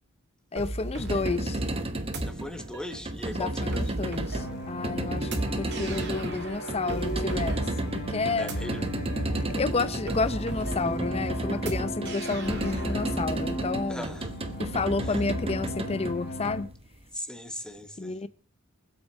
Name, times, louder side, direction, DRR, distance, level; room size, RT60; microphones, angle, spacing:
voice 1, 0.5-1.6 3.3-5.3 5.6-7.6 8.1-8.5 9.5-14.1 14.6-16.7 18.0-18.3, left 3 dB, 30° left, 0.6 m, -30 dB
sound 1, 0.6-13.2, right 2 dB, 55° right, 2.4 m, -37 dB
sound 2, 0.9-17.0, right 1 dB, 25° right, 1.1 m, -33 dB
voice 2, 2.2-4.1 8.4-9.0 13.9-14.3 15.0-15.2 17.1-18.2, left 1 dB, 5° left, 1.3 m, -39 dB
sound 3, 4.3-16.6, equal, 55° left, 3.3 m, -36 dB
24.0 x 8.1 x 4.2 m
head